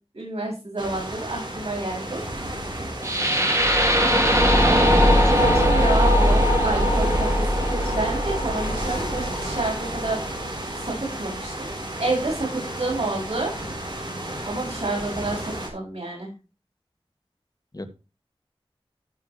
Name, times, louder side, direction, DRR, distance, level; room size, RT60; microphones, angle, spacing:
voice 1, 0.1-2.2 5.3-10.2 10.8-13.5 14.4-16.3, right 2 dB, 80° right, -3 dB, 7.0 m, -29 dB
sound 1, 0.8-15.7, right 1 dB, 50° right, 4.7 m, -33 dB
sound 2, 3.0-11.1, equal, 30° right, 3.3 m, -20 dB
voice 2, 4.6-5.7 17.7-17.9, left 1 dB, 40° left, 7 dB, 1.8 m, -35 dB
15.0 x 6.3 x 3.3 m, 0.30 s
wide cardioid pair, 55°, 10 cm